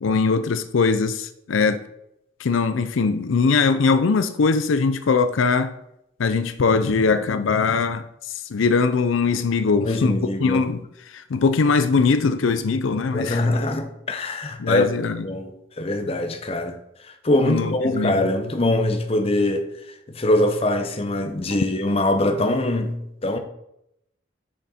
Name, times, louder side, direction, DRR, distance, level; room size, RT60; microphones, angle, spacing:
voice 1, 0.0-1.8 2.4-5.7 6.2-13.4 14.6-15.3 17.4-18.3, left 4 dB, 85° left, 0.5 m, -21 dB
voice 2, 9.7-10.6 13.1-14.9 15.2-16.8 17.0-19.7 20.1-23.4, left 1 dB, 30° left, 0.7 m, -23 dB
6.4 x 6.3 x 4.2 m
head